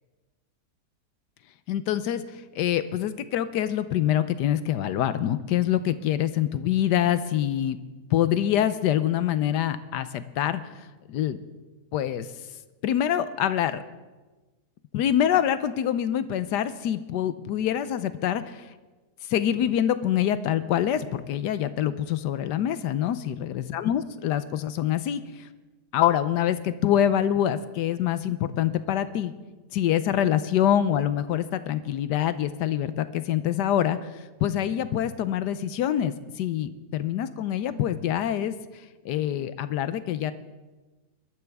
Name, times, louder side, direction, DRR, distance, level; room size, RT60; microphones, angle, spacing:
voice 1, 1.7-7.8 8.1-11.4 11.9-12.3 12.8-13.8 14.9-18.6 19.3-25.5 25.9-29.3 29.7-38.5 39.0-40.3, left 10 dB, 90° left, 13 dB, 1.3 m, -25 dB
21.5 x 13.0 x 3.5 m, 1.2 s
omnidirectional pair, 1.8 m